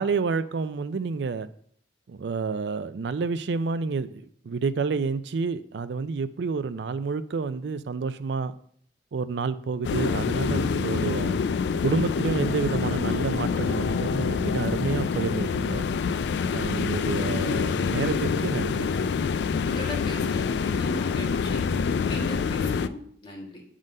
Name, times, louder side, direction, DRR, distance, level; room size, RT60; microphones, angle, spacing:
voice 1, 0.0-1.5 2.1-8.5 9.1-11.4 11.8-15.9 16.5-18.9, right 4 dB, 80° right, 0.4 m, -29 dB
sound 1, 9.8-22.9, left 5 dB, 75° left, 0.3 m, -26 dB
voice 2, 19.6-21.6 22.0-23.6, left 1 dB, 30° left, 1.5 m, -39 dB
7.7 x 3.8 x 5.3 m
head